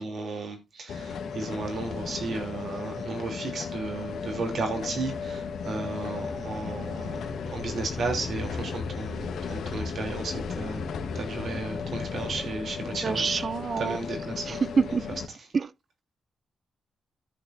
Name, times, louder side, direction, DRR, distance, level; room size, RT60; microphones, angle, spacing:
voice 1, 0.0-10.8 11.1-13.4 13.8-14.6 15.3-15.4, right 3 dB, 55° right, 3.1 m, -34 dB
sound 1, 0.9-15.3, left 5 dB, 80° left, 1.5 m, -35 dB
voice 2, 13.0-14.0 14.5-15.0 15.5-15.7, right 5 dB, 35° right, 0.4 m, -26 dB
14.0 x 6.9 x 2.6 m
wide cardioid pair, 155°, 0 cm